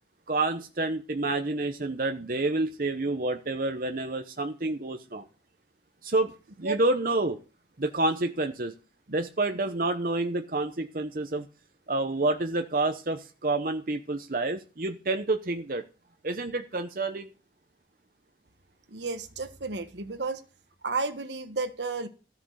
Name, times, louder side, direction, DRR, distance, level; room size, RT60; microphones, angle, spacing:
voice 1, 0.3-5.2 6.0-7.4 7.8-8.7 9.1-11.5 11.9-15.8 16.2-17.3, right 2 dB, 50° right, 0.9 m, -28 dB
voice 2, 18.9-20.4 20.8-22.1, right 3 dB, 75° right, 1.3 m, -32 dB
13.0 x 7.2 x 6.4 m
head